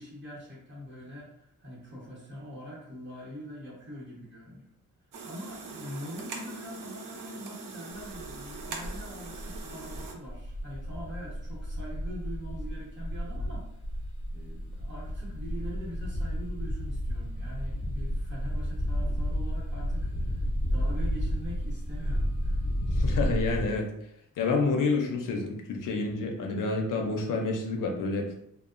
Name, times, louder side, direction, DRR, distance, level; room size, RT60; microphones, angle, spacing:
voice 1, 0.0-4.7 5.2-13.7 14.3-22.6, equal, 35° right, -5 dB, 0.9 m, -43 dB
sound 1, 5.1-10.1, right 4 dB, 65° right, 0.5 m, -42 dB
sound 2, 8.0-23.7, equal, 25° left, 0.6 m, -32 dB
voice 2, 22.9-23.9 24.4-28.3, left 3 dB, 70° left, 2 dB, 0.5 m, -28 dB
2.8 x 2.0 x 2.4 m, 0.75 s
wide cardioid pair, 160°, 34 cm